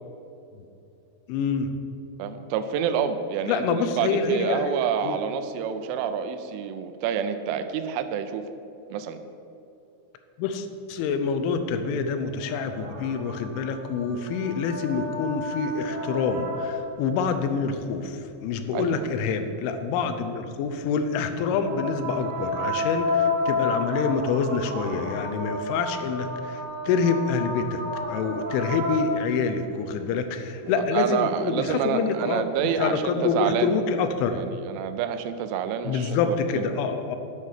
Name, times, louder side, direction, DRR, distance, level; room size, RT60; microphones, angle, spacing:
voice 1, 1.3-1.7 3.5-5.2 10.4-27.8 28.1-32.5 32.8-34.5 35.8-37.2, left 5 dB, 85° left, 8 dB, 3.2 m, -27 dB
voice 2, 2.2-8.5 8.9-9.2 18.7-19.1 30.6-33.7 34.3-36.7, right 7 dB, 85° right, 9 dB, 3.1 m, -28 dB
sound 1, 12.2-17.0 21.3-29.6 30.9-31.0, left 2 dB, 30° right, 2.5 m, -31 dB
9.7 x 7.3 x 6.6 m, 2.7 s
omnidirectional pair, 5.5 m